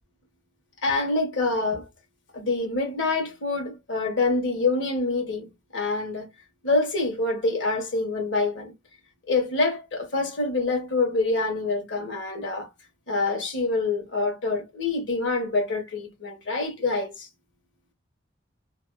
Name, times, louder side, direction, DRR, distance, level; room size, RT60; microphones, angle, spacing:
voice 1, 0.8-1.9 2.3-6.3 6.6-8.7 9.3-12.7 13.1-17.3, left 3 dB, 65° left, 1.3 m, -26 dB
2.8 x 2.3 x 2.4 m
head